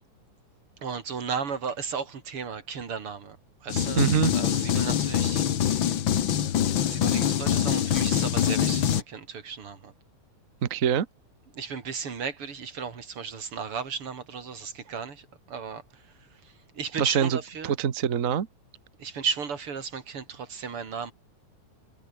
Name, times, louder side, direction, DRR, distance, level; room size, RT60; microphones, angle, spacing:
voice 1, 0.8-4.0 4.3-5.9 6.4-9.9 11.5-17.8 19.0-21.1, right 6 dB, 50° right, 3.5 m, -35 dB
sound 1, 3.7-9.0, left 10 dB, 55° left, 1.6 m, -24 dB
voice 2, 4.0-4.4 10.6-11.1 17.0-17.4 17.6-18.5, right 8 dB, 65° right, 0.8 m, -24 dB
omnidirectional pair, 3.4 m